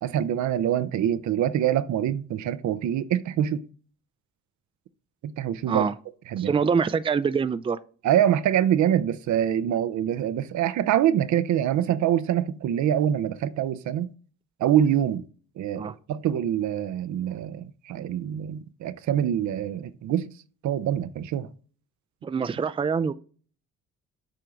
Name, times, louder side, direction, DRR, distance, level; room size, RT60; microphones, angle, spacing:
voice 1, 0.0-3.6 5.2-5.8 6.3-6.5 8.0-14.1 14.6-15.2 15.6-20.3 20.6-21.5, right 10 dB, 70° right, 0.7 m, -25 dB
voice 2, 6.4-7.8 15.8-15.9 22.2-23.1, right 6 dB, 20° right, 0.4 m, -25 dB
7.8 x 4.6 x 3.9 m
cardioid pair, 90°, 30 cm